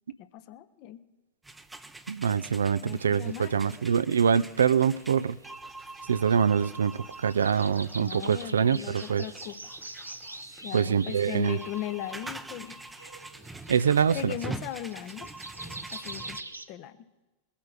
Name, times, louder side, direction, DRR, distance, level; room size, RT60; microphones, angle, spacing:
voice 1, 0.2-1.0 2.8-3.8 8.0-9.6 10.6-12.8 14.1-15.3 15.9-16.4 16.7-17.0, left 12 dB, 40° left, 12 dB, 0.8 m, -38 dB
sound 1, 1.4-16.4, right 2 dB, 5° right, 0.7 m, -45 dB
voice 2, 2.1-5.4 6.1-9.2 10.7-11.6 13.7-14.3, right 7 dB, 70° right, 15 dB, 0.4 m, -24 dB
sound 2, 3.3-16.7, right 2 dB, 85° right, 0.9 m, -45 dB
21.5 x 8.4 x 4.9 m, 1.2 s
figure-of-eight pair, 90°, 0 cm